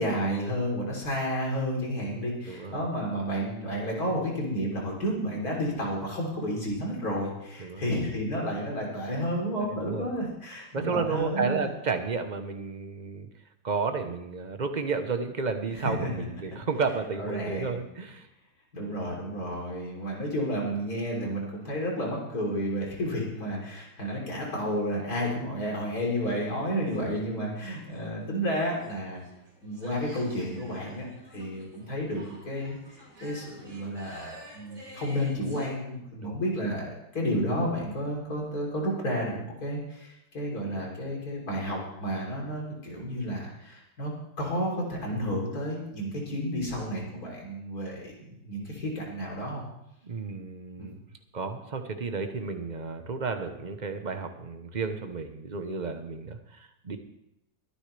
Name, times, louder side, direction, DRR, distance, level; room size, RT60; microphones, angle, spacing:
voice 1, 0.0-11.7 15.7-16.1 17.2-17.8 18.7-29.2 29.6-32.8 33.2-44.1 44.4-49.6 50.8-50.9, equal, 60° left, -2 dB, 3.9 m, -31 dB
voice 2, 2.5-2.8 7.6-7.9 9.6-10.1 10.7-13.3 13.6-18.3 36.2-36.4 50.0-51.0 51.3-57.0, right 4 dB, 30° right, 7 dB, 0.9 m, -32 dB
sound 1, 25.7-35.7, right 1 dB, 60° right, 4.0 m, -51 dB
22.5 x 9.8 x 3.4 m, 0.84 s
omnidirectional pair, 1.8 m